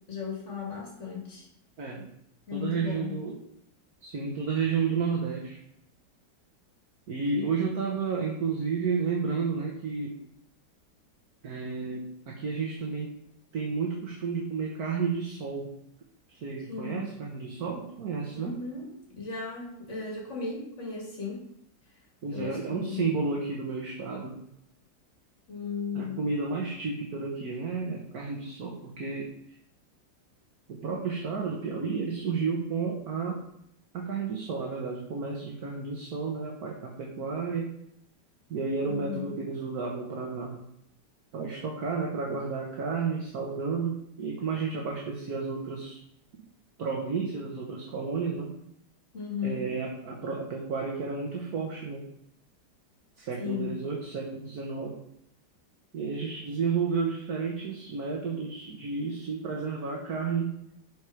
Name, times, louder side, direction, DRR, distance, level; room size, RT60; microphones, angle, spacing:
voice 1, 0.1-1.5 2.5-3.2 7.3-7.7 16.7-17.0 18.3-21.5 21.9-22.0 22.3-23.1 25.5-26.2 38.9-39.4 49.1-49.7 53.4-53.7, left 6 dB, 40° left, -2 dB, 2.7 m, -36 dB
voice 2, 1.8-2.1 2.5-3.4 4.0-5.6 7.1-10.2 11.4-13.2 13.5-15.7 16.3-18.6 22.2-24.4 25.9-29.3 30.7-33.4 33.9-37.7 38.5-40.6 41.3-46.0 46.8-48.5 49.4-52.1 53.2-55.0 55.9-60.5, right 5 dB, 55° right, -1 dB, 1.7 m, -32 dB
11.5 x 4.9 x 4.9 m, 0.75 s
omnidirectional pair, 2.0 m